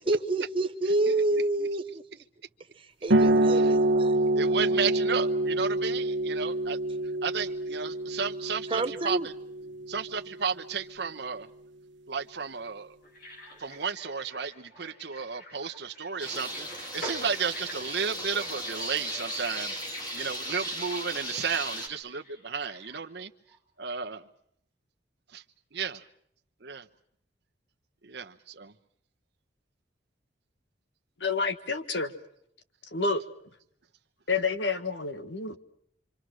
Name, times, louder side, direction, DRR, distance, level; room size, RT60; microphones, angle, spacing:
voice 1, 0.1-2.0 2.8-4.1 8.7-9.3, right 2 dB, 30° right, 0.9 m, -28 dB
sound 1, 3.1-10.2, right 1 dB, 85° right, 1.2 m, -26 dB
voice 2, 4.4-6.8 7.2-9.3 9.9-11.5 12.1-13.0 13.6-19.8 20.1-23.3 23.8-24.3 25.3-25.4 25.7-26.0 26.6-26.8 28.0-28.7, right 6 dB, 65° right, 1.1 m, -33 dB
sound 2, 13.0-23.6 23.9-24.0, equal, 55° left, 6.6 m, -48 dB
sound 3, 16.2-21.9, equal, 25° left, 3.2 m, -36 dB
voice 3, 31.2-32.1 32.9-33.2 34.3-35.6, left 4 dB, 75° left, 1.6 m, -29 dB
27.0 x 25.5 x 6.4 m
head